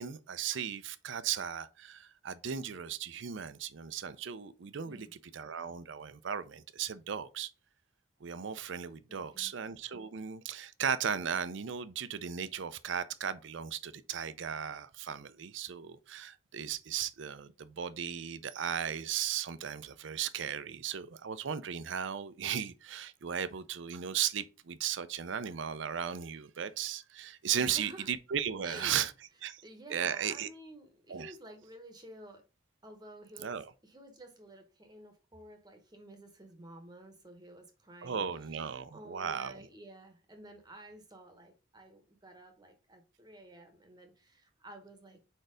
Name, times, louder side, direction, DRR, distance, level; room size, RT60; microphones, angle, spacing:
voice 1, 0.0-5.1 5.3-7.5 8.2-29.1 29.4-29.6 29.9-30.5 31.1-31.3 33.4-33.7 38.0-39.6, right 8 dB, 65° right, 0.5 m, -36 dB
voice 2, 9.1-9.5 27.6-28.1 28.6-29.0 29.6-32.4 32.8-45.2, right 1 dB, 20° right, 0.9 m, -52 dB
4.5 x 4.4 x 4.9 m
head